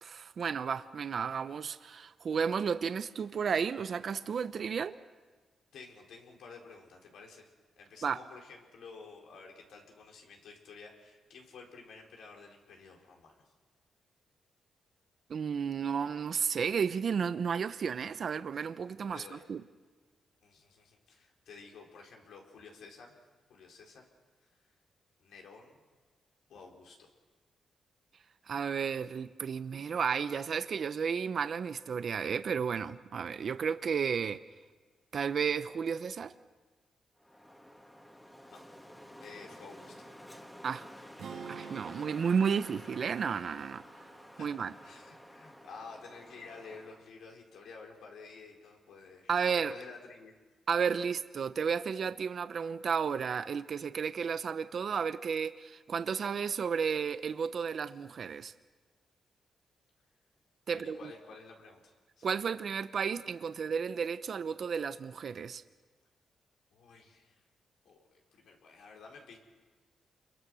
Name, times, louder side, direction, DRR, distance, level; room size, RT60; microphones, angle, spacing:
voice 1, 0.0-5.0 8.0-8.2 15.3-19.6 28.5-34.4 35.1-36.3 40.6-40.9 41.5-43.8 44.4-44.7 49.3-49.7 50.7-58.5 60.7-61.1 62.2-65.6, right 6 dB, 55° right, 0.8 m, -32 dB
voice 2, 5.7-7.5 7.8-13.5 18.5-18.7 19.1-19.4 20.4-24.1 24.4-24.5 25.2-25.8 26.5-27.1 38.5-38.6 39.2-40.1 44.4-44.5 44.8-50.3 60.7-62.3 66.7-67.4 67.8-69.4, left 4 dB, 90° left, 4.3 m, -51 dB
Wind, 37.2-47.1, equal, 10° left, 2.2 m, -51 dB
sound 1, 41.2-45.4, right 6 dB, 80° right, 2.4 m, -49 dB
28.5 x 22.5 x 6.3 m
cardioid pair, 105°, 0 cm